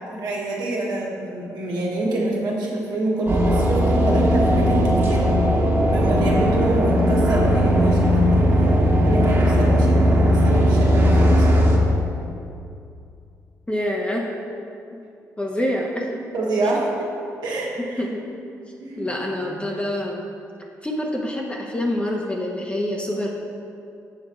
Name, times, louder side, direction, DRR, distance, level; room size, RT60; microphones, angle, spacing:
voice 1, 0.0-5.3 5.9-8.7 9.0-11.4 16.3-17.1 17.4-18.0 18.8-19.1, right 2 dB, 70° right, -3 dB, 1.7 m, -26 dB
sound 1, 3.3-11.8, equal, 30° right, 1.8 m, -17 dB
voice 2, 13.7-14.3 15.4-16.2 17.8-18.2 19.0-20.2 20.8-23.3, left 1 dB, 15° left, -2 dB, 1.1 m, -26 dB
7.7 x 5.9 x 4.4 m, 2.5 s
hypercardioid pair, 45°, 7 cm